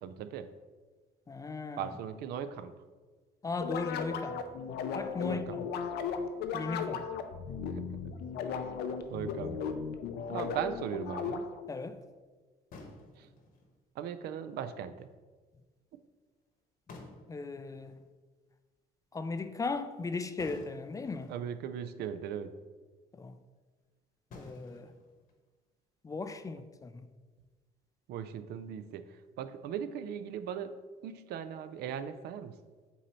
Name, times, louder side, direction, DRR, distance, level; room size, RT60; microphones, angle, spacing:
voice 1, 0.0-0.5 1.8-2.7 5.2-5.6 7.6-8.0 8.4-8.7 9.1-9.6 10.3-11.4 13.2-13.3 14.0-15.1 21.3-22.5 28.1-30.7 31.0-32.5, right 8 dB, 75° right, 0.4 m, -38 dB
voice 2, 1.3-1.9 3.4-4.4 4.9-5.7 6.5-7.1 11.7-12.0 17.3-18.0 19.1-21.3 23.2-23.3 24.3-24.9 26.0-27.1, left 3 dB, 20° left, 0.3 m, -37 dB
sound 1, 3.6-11.7, left 6 dB, 75° left, 0.5 m, -36 dB
sound 2, 8.8-9.6 11.5-11.6 12.7-13.8 16.6-16.7 16.9-18.0 20.4-21.6 22.2-22.3 22.6-22.7 24.3-25.6, left 2 dB, 55° left, 1.2 m, -52 dB
8.1 x 2.8 x 4.3 m
cardioid pair, 110°, 17 cm